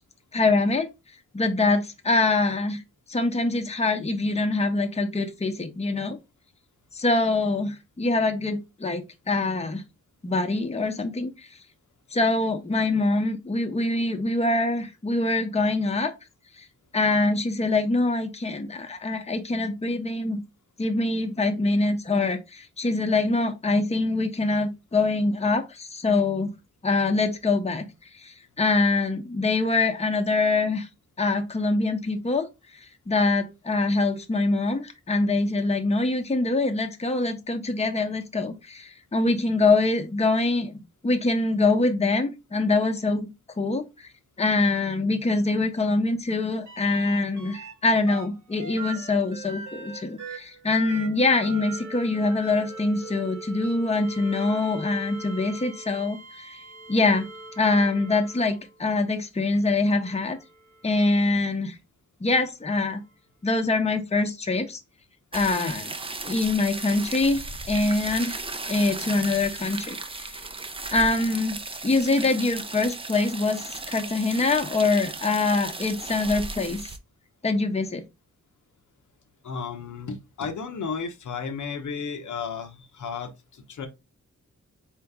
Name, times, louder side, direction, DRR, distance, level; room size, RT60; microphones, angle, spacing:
voice 1, 0.3-0.9 1.3-2.8 3.1-6.2 6.9-9.8 10.2-11.5 12.1-16.1 16.6-16.7 16.9-20.4 20.8-26.5 26.8-27.9 28.1-30.9 31.2-32.5 33.1-43.3 43.6-44.1 44.4-56.6 56.9-57.3 57.6-60.4 60.8-61.8 62.2-63.0 63.4-64.8 65.3-65.9 66.2-68.4 68.7-70.4 70.9-76.9 77.4-78.0, left 3 dB, 20° left, 0.7 m, -24 dB
sound 1, 46.7-47.7 48.1-58.8 59.7-61.3 63.0-63.1, right 3 dB, 80° right, 1.3 m, -41 dB
sound 2, 65.3-77.0, right 3 dB, 20° right, 0.5 m, -36 dB
voice 2, 79.4-83.9, left 5 dB, 90° left, 0.9 m, -33 dB
4.4 x 2.9 x 3.6 m
wide cardioid pair, 110°, 29 cm